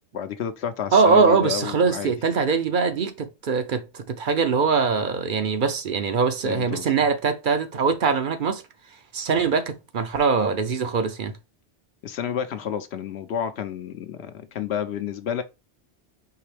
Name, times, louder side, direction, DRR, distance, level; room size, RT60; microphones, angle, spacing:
voice 1, 0.1-2.1 6.4-6.9 12.0-15.4, left 8 dB, 70° left, 0.8 m, -30 dB
voice 2, 0.9-8.6 9.1-11.3, right 5 dB, 55° right, 0.7 m, -22 dB
4.7 x 3.2 x 3.3 m
omnidirectional pair, 1.2 m